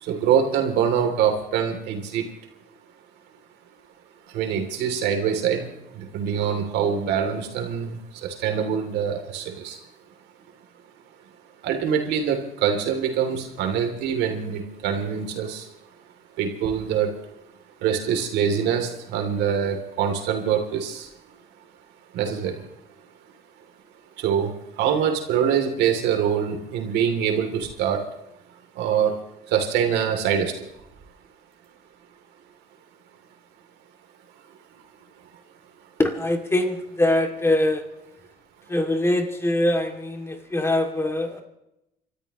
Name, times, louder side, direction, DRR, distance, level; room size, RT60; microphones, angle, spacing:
voice 1, 0.0-2.2 4.3-5.7 5.9-9.8 11.6-15.6 16.4-17.1 17.8-21.1 22.1-22.6 24.2-24.5 24.8-28.0 28.8-29.1 29.5-30.5, right 8 dB, 85° right, 4 dB, 3.0 m, -24 dB
voice 2, 36.0-37.8 38.7-41.4, left 1 dB, 15° left, 4 dB, 2.4 m, -23 dB
29.5 x 13.5 x 3.1 m, 0.85 s
cardioid pair, 110°, 17 cm